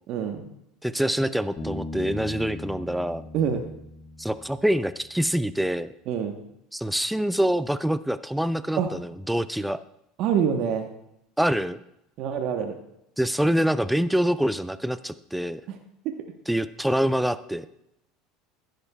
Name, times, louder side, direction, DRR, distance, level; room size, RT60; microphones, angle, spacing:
voice 1, 0.1-0.5 3.3-3.7 6.1-6.4 8.8-8.9 10.2-10.9 12.2-12.8 15.7-15.8 16.0-16.1, right 7 dB, 60° right, 5 dB, 1.1 m, -26 dB
voice 2, 0.8-3.2 4.2-5.9 6.7-9.8 11.4-11.8 13.2-15.6 16.5-17.7, equal, 5° right, 14 dB, 0.5 m, -25 dB
Bass guitar, 1.6-5.1, left 2 dB, 25° left, 3.5 m, -39 dB
14.5 x 12.0 x 2.3 m, 0.80 s
hypercardioid pair, 85°, 0 cm